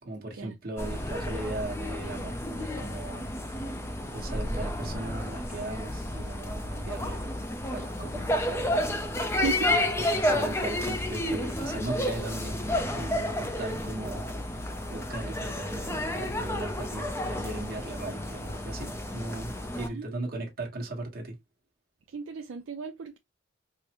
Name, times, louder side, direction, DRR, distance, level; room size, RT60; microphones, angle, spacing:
voice 1, 0.0-3.3 4.1-7.3 7.7-8.8 9.7-9.8 10.1-12.6 12.9-14.3 14.9-21.3, right 2 dB, 45° right, 1.2 m, -38 dB
sound 1, 0.8-19.9, left 1 dB, 15° left, 0.4 m, -31 dB
voice 2, 9.3-10.2 19.8-20.2 22.1-23.2, right 5 dB, 70° right, 0.4 m, -36 dB
4.7 x 2.0 x 2.9 m
head